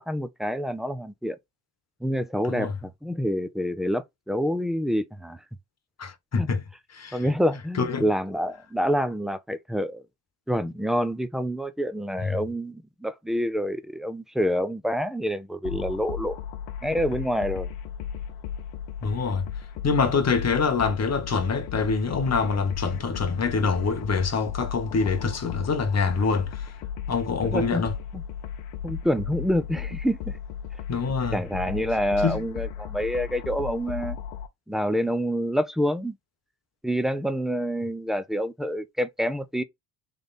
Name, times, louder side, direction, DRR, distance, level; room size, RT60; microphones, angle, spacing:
voice 1, 0.0-1.4 2.0-5.4 6.4-6.5 7.1-10.0 10.5-16.3 16.8-17.7 27.4-27.8 28.1-28.2 28.8-30.4 31.3-34.2 34.7-36.2 36.8-39.6, equal, ahead, 0.4 m, -27 dB
voice 2, 6.0-6.6 6.9-7.2 7.8-8.0 12.2-12.4 19.0-19.5 19.8-26.7 27.1-27.9 30.9-31.4 32.2-32.4, left 5 dB, 35° left, 1.2 m, -25 dB
sound 1, 15.6-34.5, left 8 dB, 85° left, 1.0 m, -35 dB
3.4 x 3.3 x 4.0 m
cardioid pair, 105°, 47 cm